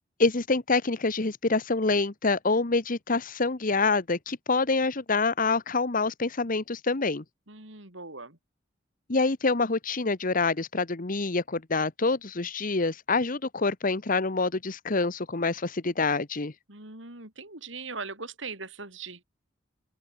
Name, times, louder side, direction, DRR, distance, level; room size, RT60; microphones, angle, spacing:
voice 1, 0.2-7.2 9.1-16.5, left 3 dB, 45° left, 1.2 m, -26 dB
voice 2, 7.5-8.4 16.7-19.2, right 4 dB, 75° right, 6.6 m, -40 dB
open air
head